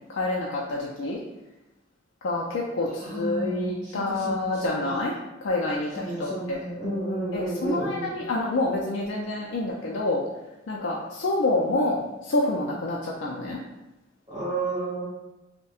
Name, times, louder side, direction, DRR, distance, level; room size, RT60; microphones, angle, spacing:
voice 1, 0.1-1.2 2.2-5.1 5.4-10.2 10.7-13.6, left 2 dB, 75° left, -3 dB, 0.4 m, -28 dB
voice 2, 3.0-4.9 5.9-8.1 14.3-15.1, right 2 dB, 20° right, -9 dB, 1.2 m, -32 dB
5.4 x 2.1 x 2.4 m, 1.0 s
head